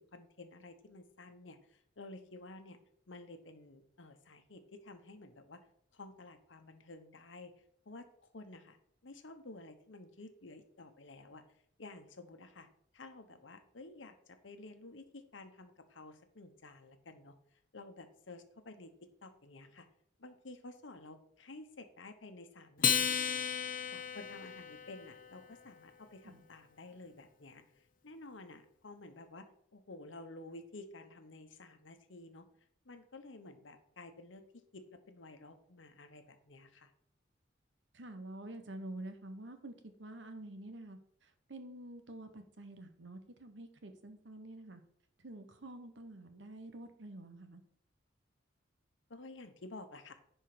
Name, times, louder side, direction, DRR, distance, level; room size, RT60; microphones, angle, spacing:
voice 1, 0.0-2.8 3.1-5.6 5.9-7.5 7.8-8.8 9.0-11.4 11.8-12.7 12.9-17.3 17.7-18.9 19.2-19.9 20.2-23.4 23.9-29.5 29.7-32.5 32.8-36.9 49.1-50.1, left 2 dB, 85° left, 7 dB, 1.1 m, -52 dB
Acoustic guitar, 22.8-25.5, left 8 dB, 45° left, 0.7 m, -34 dB
voice 2, 37.9-39.7 40.0-44.8 45.2-47.6, right 1 dB, 70° right, 7 dB, 1.1 m, -48 dB
10.5 x 4.5 x 5.1 m, 0.68 s
head